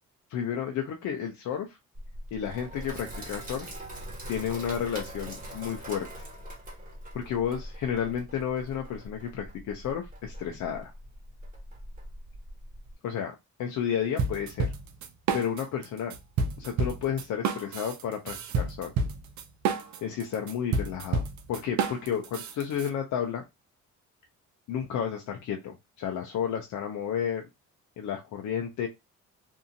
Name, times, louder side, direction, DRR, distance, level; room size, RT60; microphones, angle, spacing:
voice 1, 0.3-1.7 2.3-3.7 4.3-6.3 7.1-10.9 13.0-13.3 13.6-14.7 15.3-16.1 16.6-18.9 20.0-21.2 21.5-23.4 24.7-27.5 28.0-28.9, left 8 dB, 70° left, 2 dB, 0.6 m, -32 dB
Sink (filling or washing), 1.9-12.9, right 1 dB, 30° right, 1.2 m, -42 dB
sound 1, 14.2-15.9 16.1-22.9, right 4 dB, 70° right, 0.5 m, -29 dB
2.7 x 2.5 x 2.6 m, 0.21 s
cardioid pair, 90°, 30 cm